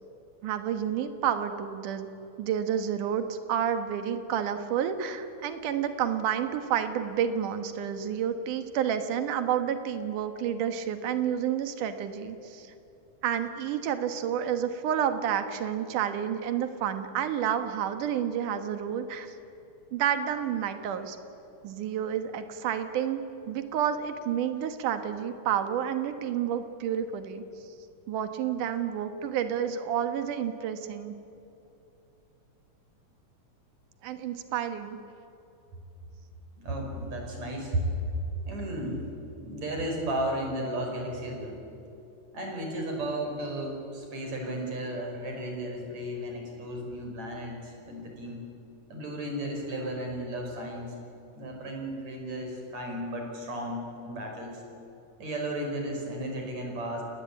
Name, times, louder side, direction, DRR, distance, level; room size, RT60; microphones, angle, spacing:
voice 1, 0.4-2.1 2.4-12.7 13.2-19.3 19.9-21.2 21.6-23.2 23.5-27.4 28.1-31.1 34.0-35.0, right 9 dB, 80° right, 8 dB, 2.9 m, -30 dB
voice 2, 36.6-37.9 38.5-39.0 39.4-41.6 42.3-48.4 48.9-50.9 51.3-54.6 55.2-57.0, right 1 dB, 60° right, 2 dB, 6.4 m, -34 dB
29.0 x 20.0 x 8.6 m, 2.7 s
omnidirectional pair, 3.6 m